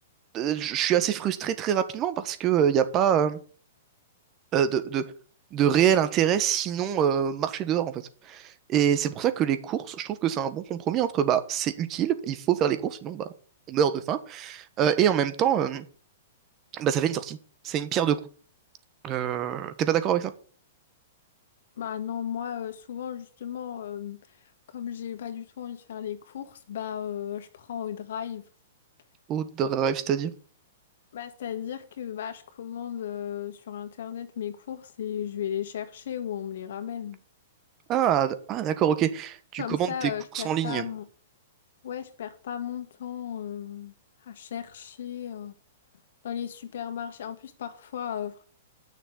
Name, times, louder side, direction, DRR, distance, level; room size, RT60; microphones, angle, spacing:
voice 1, 0.3-3.4 4.5-5.0 5.5-8.0 8.3-13.3 13.7-15.8 16.7-17.4 17.6-18.2 19.0-20.3 29.3-30.3 37.9-40.8, right 9 dB, 30° right, 1.2 m, -25 dB
voice 2, 21.8-24.2 24.7-28.4 31.1-37.2 39.6-41.0 41.8-43.9 44.2-45.5 46.2-48.4, left 9 dB, 70° left, 1.9 m, -35 dB
9.3 x 6.7 x 7.9 m
hypercardioid pair, 140°, 0 cm